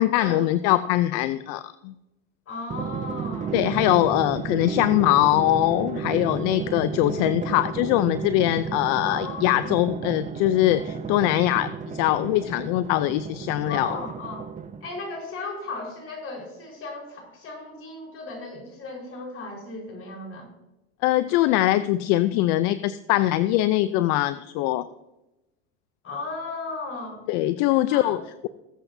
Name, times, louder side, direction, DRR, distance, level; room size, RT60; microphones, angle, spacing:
voice 1, 0.0-1.9 3.5-14.0 21.0-24.9 27.3-28.5, left 15 dB, 70° left, 14 dB, 0.6 m, -22 dB
voice 2, 2.5-3.5 9.0-9.8 13.7-14.4 14.8-20.5 26.0-27.2 27.7-28.2, left 3 dB, 40° left, 0 dB, 4.7 m, -36 dB
Drum, 2.7-15.1, right 7 dB, 20° right, 0.7 m, -33 dB
19.5 x 7.9 x 2.7 m, 0.96 s
supercardioid pair, 105°, 35 cm